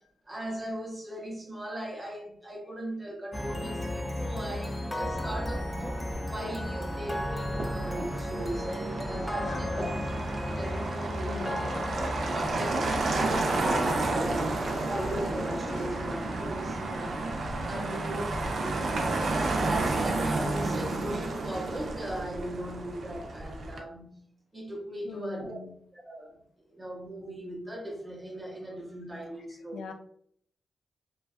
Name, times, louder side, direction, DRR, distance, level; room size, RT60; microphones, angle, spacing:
voice 1, 0.3-6.0 6.3-9.9 10.6-11.5 12.3-14.6 14.8-18.3 18.5-19.0 19.3-24.2 24.5-25.6 25.9-29.9, right 1 dB, 15° right, 0.8 m, -38 dB
sound 1, 3.3-16.6, left 1 dB, 10° left, 0.3 m, -35 dB
Motor vehicle (road), 5.0-23.8, right 2 dB, 70° right, 0.5 m, -32 dB
voice 2, 9.4-10.1 11.3-11.9 14.8-14.9 15.7-15.9 17.7-18.2 25.0-25.8 29.7-29.9, left 5 dB, 85° left, 0.4 m, -42 dB
2.5 x 2.3 x 2.3 m
cardioid pair, 95°, 0 cm